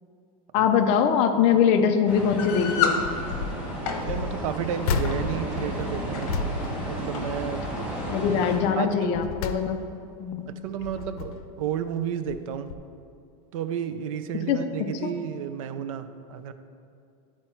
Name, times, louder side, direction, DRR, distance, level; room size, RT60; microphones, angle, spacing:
voice 1, 0.5-3.1 8.1-9.8 10.2-10.5 14.5-14.6 15.0-15.1, left 7 dB, 35° left, 7 dB, 0.4 m, -22 dB
sound 1, 2.1-8.6, right 1 dB, 5° right, 1.1 m, -33 dB
sound 2, 2.4-3.0 3.7-4.0 5.0-5.2 5.9-6.3 7.1-7.3 7.6-7.7 8.4-8.6, left 7 dB, 55° left, 1.1 m, -28 dB
sound 3, 2.9-3.6 4.0-7.7 8.1-8.4 8.9-10.2 10.7-11.6 12.3-12.4 12.7-12.8, left 5 dB, 80° left, 0.6 m, -33 dB
voice 2, 4.0-6.3 6.8-7.7 8.8-9.2 10.5-12.7 13.5-16.5, right 8 dB, 65° right, 10 dB, 0.5 m, -32 dB
11.0 x 4.4 x 4.4 m, 2.5 s
supercardioid pair, 170°, 19 cm